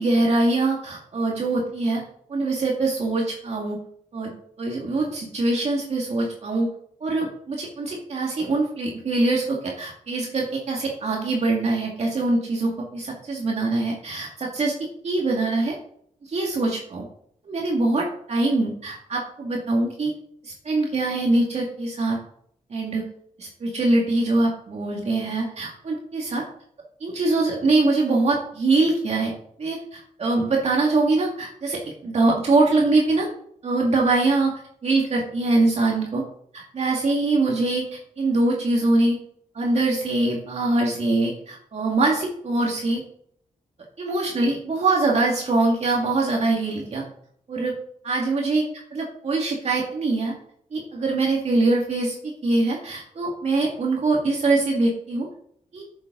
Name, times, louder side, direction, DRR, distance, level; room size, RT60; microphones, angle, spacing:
voice 1, 0.0-2.0 2.3-3.8 4.1-4.3 4.6-6.7 7.0-15.8 16.2-17.0 17.5-20.1 20.4-22.2 22.7-23.1 23.4-26.4 27.0-29.3 29.6-33.3 33.6-36.2 36.5-39.2 39.5-43.0 44.0-47.0 47.5-47.7 48.0-48.6 48.9-50.3 50.7-52.2 52.4-55.3 55.7-55.8, right 2 dB, 50° right, -2 dB, 2.1 m, -23 dB
9.6 x 7.4 x 3.9 m, 0.67 s
cardioid pair, 80°, 14 cm